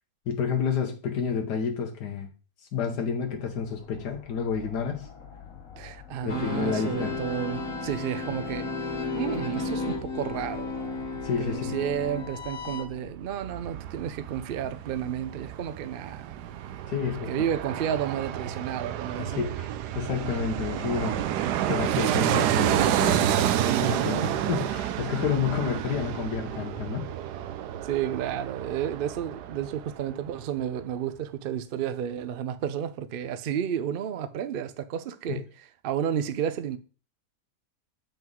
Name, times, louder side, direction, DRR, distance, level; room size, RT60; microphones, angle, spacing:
voice 1, 0.3-2.3 2.7-5.1 6.2-7.2 11.2-11.7 16.9-17.4 19.2-19.6 19.9-21.2 21.7-23.3 23.8-27.1 35.3-35.4, left 6 dB, 85° left, 1.5 m, -30 dB
sound 1, 2.7-13.1, left 6 dB, 55° left, 1.4 m, -46 dB
voice 2, 5.8-8.7 9.1-10.8 11.4-16.4 17.3-19.5 23.6-23.8 24.2-24.3 27.6-36.8, right 9 dB, 70° right, 0.5 m, -31 dB
sound 2, 6.3-12.9, left 3 dB, 40° left, 1.4 m, -33 dB
Fixed-wing aircraft airplane, 13.2-30.1 30.4-30.5, right 11 dB, 90° right, 1.2 m, -29 dB
7.8 x 5.2 x 3.7 m
omnidirectional pair, 1.7 m